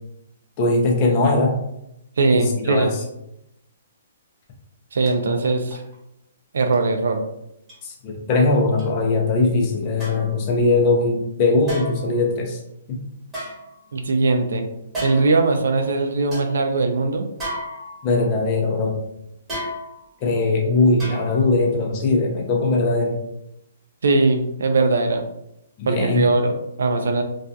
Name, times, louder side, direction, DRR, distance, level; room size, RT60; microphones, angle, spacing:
voice 1, 0.6-1.6 2.3-3.0 7.8-12.6 12.9-13.0 13.4-13.5 18.0-19.0 20.2-23.2 25.8-26.2, left 3 dB, 30° left, 1 dB, 0.5 m, -20 dB
voice 2, 2.2-2.9 4.9-5.8 6.5-7.2 13.9-14.7 15.0-17.2 24.0-25.2 25.9-27.2, right 3 dB, 80° right, 5 dB, 0.4 m, -20 dB
sound 1, 5.1-5.2 5.7-5.9 6.7-6.8 7.7-7.8 8.8-8.9 10.0-10.4 11.7-12.2 13.3-14.2 14.9-15.4 15.9-16.0 16.3-16.5 17.4-18.2 19.5-20.1 21.0-21.6 21.9-22.0, equal, 10° right, 1.1 m, -33 dB
2.6 x 2.3 x 2.2 m, 0.82 s
hypercardioid pair, 160°, 0 cm